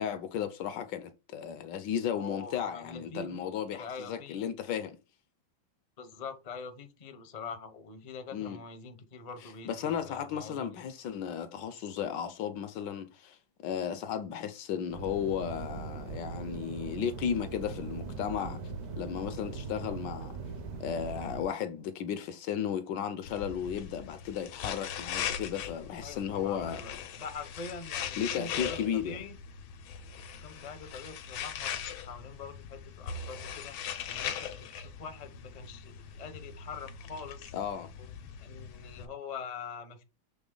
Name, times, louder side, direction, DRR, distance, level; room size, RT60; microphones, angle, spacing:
voice 1, 0.0-5.0 8.3-8.6 9.4-18.6 19.0-20.4 20.8-26.8 28.2-29.2 37.5-37.9, left 8 dB, 75° left, 1.1 m, -34 dB
voice 2, 2.2-3.4 3.7-4.5 6.0-10.7 26.0-29.4 30.4-31.8 32.1-33.8 34.1-37.5 38.0-38.1 38.4-40.0, left 5 dB, 40° left, 0.5 m, -44 dB
sound 1, 14.9-21.5, right 4 dB, 60° right, 1.2 m, -40 dB
sound 2, 23.3-39.1, left 8 dB, 90° left, 1.6 m, -40 dB
7.0 x 3.6 x 3.8 m
omnidirectional pair, 2.2 m